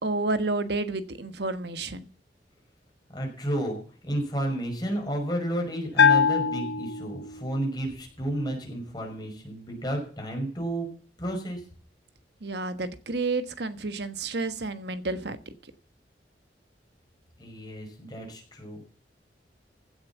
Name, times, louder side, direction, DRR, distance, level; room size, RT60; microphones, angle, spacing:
voice 1, 0.0-2.1 12.4-15.4, right 3 dB, 65° right, 11 dB, 1.3 m, -30 dB
voice 2, 3.1-3.8 4.0-10.9 11.2-11.6 17.4-18.9, right 1 dB, 25° left, 1 dB, 5.5 m, -31 dB
Bell, 6.0-7.6, left 6 dB, 75° left, 0.9 m, -22 dB
16.0 x 7.3 x 7.2 m, 0.42 s
head